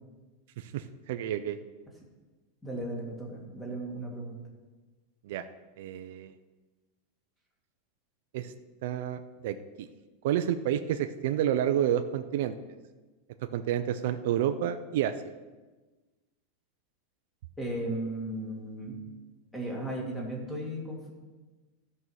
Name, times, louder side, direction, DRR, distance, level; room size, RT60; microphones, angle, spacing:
voice 1, 0.6-1.6 5.2-5.5 5.8-6.3 8.3-8.5 8.8-9.9 10.2-12.5 13.4-15.1, right 10 dB, 60° right, 9 dB, 0.5 m, -30 dB
voice 2, 2.6-4.4 17.6-19.0 19.5-21.1, right 1 dB, 5° left, -2 dB, 2.0 m, -35 dB
13.0 x 5.6 x 6.4 m, 1.2 s
supercardioid pair, 170°, 0 cm